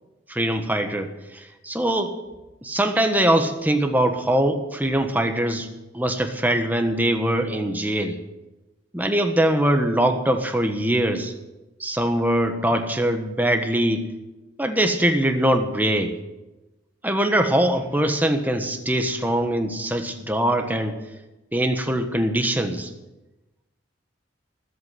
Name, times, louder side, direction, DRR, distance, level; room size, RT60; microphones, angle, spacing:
voice 1, 0.3-2.1 2.6-5.7 5.9-8.2 8.9-11.3 11.8-14.1 14.6-16.1 17.0-21.0 21.5-22.9, right 1 dB, 10° right, 5 dB, 1.3 m, -22 dB
19.5 x 8.5 x 7.6 m, 1.0 s
head